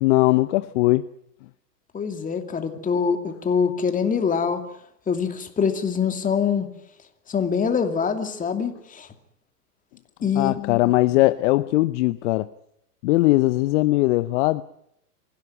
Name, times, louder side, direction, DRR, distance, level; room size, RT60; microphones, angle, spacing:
voice 1, 0.0-1.1 10.3-12.5 13.0-14.6, left 19 dB, 45° left, 0.8 m, -20 dB
voice 2, 1.9-4.6 5.1-6.7 7.3-9.1 10.2-10.9, left 6 dB, 15° left, 2.7 m, -24 dB
25.0 x 16.5 x 9.5 m
hypercardioid pair, 120°, 48 cm